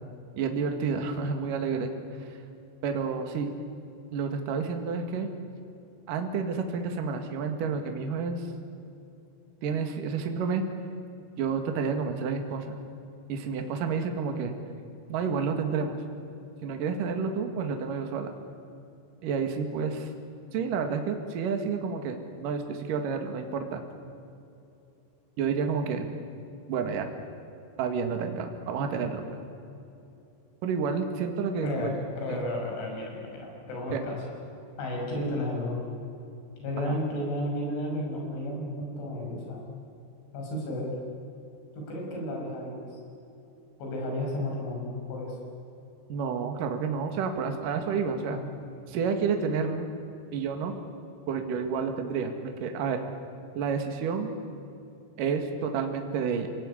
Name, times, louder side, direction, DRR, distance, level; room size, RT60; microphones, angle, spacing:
voice 1, 0.4-1.9 2.2-2.4 2.8-3.5 4.1-5.3 6.1-8.4 9.6-10.6 11.4-12.8 13.3-14.5 15.1-16.0 16.6-18.3 19.2-20.1 20.5-23.8 25.4-26.1 26.7-27.1 27.8-29.4 30.6-31.9 32.3-32.4 33.9-34.0 36.8-36.9 46.1-48.4 48.9-49.9 50.3-50.8 51.3-52.3 52.6-53.0 53.5-54.3 55.2-56.5, right 5 dB, 55° right, 5 dB, 3.1 m, -30 dB
voice 2, 31.6-34.2 34.8-35.8 36.6-39.6 40.3-41.0 41.8-43.0 43.8-45.4 48.3-48.5, left 1 dB, 90° left, 0 dB, 8.5 m, -33 dB
28.5 x 18.0 x 9.9 m, 2.7 s
omnidirectional pair, 5.3 m